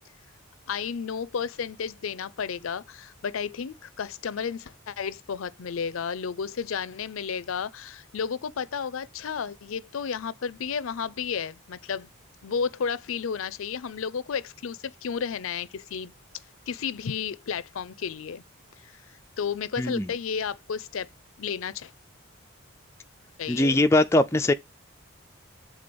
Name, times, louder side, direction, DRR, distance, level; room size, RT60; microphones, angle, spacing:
voice 1, 0.7-12.1 12.4-16.1 16.7-18.4 18.8-19.0 19.4-21.1 21.4-21.9 23.4-23.8, left 6 dB, 70° left, 0.5 m, -32 dB
voice 2, 19.8-20.1 23.5-24.5, left 2 dB, 10° left, 0.3 m, -21 dB
6.9 x 3.7 x 5.1 m
head